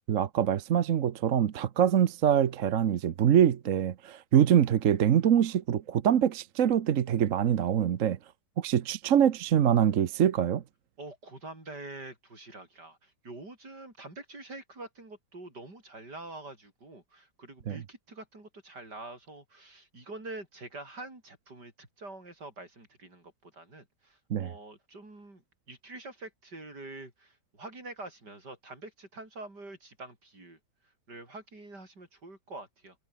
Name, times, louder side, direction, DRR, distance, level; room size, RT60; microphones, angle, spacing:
voice 1, 0.1-8.2 8.6-10.6 17.7-17.8 24.3-24.5, right 9 dB, 55° right, 1.2 m, -24 dB
voice 2, 11.0-25.4 25.7-30.6 31.1-33.0, right 2 dB, 80° right, 7.4 m, -46 dB
omnidirectional pair, 1.8 m